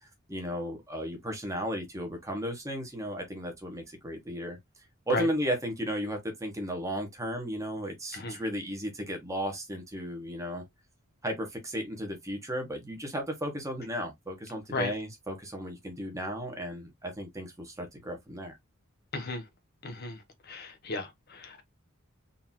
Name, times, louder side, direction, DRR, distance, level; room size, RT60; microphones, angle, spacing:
voice 1, 0.0-4.6 5.1-10.6 11.2-18.6, equal, 15° right, 1.1 m, -35 dB
voice 2, 19.1-19.4 19.8-20.2 20.5-21.6, left 2 dB, 45° left, 0.6 m, -34 dB
3.9 x 2.8 x 2.7 m
head